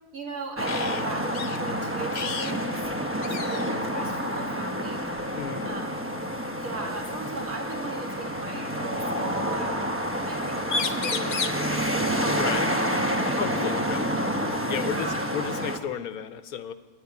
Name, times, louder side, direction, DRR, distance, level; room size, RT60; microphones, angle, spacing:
voice 1, 0.1-2.8 3.3-5.0 5.6-6.0 6.6-9.8 10.3-12.9 13.2-13.8 14.8-15.2, right 3 dB, 75° right, -1 dB, 2.8 m, -38 dB
sound 1, 0.6-1.0 1.3-1.6 2.1-2.6 2.8-2.9 3.2-3.8 5.0-5.2 6.9-7.0 8.1-9.0 10.3-10.4 10.6-11.7 13.6-13.7 14.1-15.1, left 5 dB, 50° left, 0.5 m, -33 dB
sound 2, 0.6-15.8, equal, 10° right, 0.7 m, -29 dB
voice 2, 5.3-5.7 12.4-12.6 13.4-14.1 14.7-16.7, left 8 dB, 80° left, 11 dB, 1.3 m, -33 dB
sound 3, 9.2-10.6 14.3-14.6, right 4 dB, 50° right, 1.9 m, -41 dB
13.0 x 9.5 x 9.6 m, 1.3 s
omnidirectional pair, 1.5 m